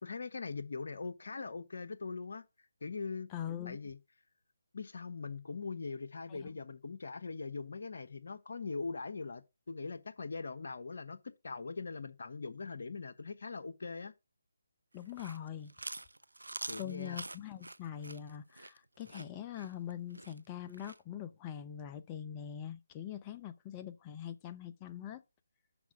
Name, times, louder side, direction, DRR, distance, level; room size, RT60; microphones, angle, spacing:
voice 1, 0.0-2.5 2.8-3.3 3.6-4.0 4.7-14.1 16.7-17.2, left 4 dB, 60° left, 1.1 m, -41 dB
voice 2, 3.3-3.8 6.3-6.5 14.9-15.7 16.8-25.2, left 10 dB, 20° left, 0.7 m, -43 dB
Chewing mastication, 15.0-21.0, right 2 dB, 85° right, 0.5 m, -46 dB
6.1 x 4.6 x 6.4 m
figure-of-eight pair, 150°, 0 cm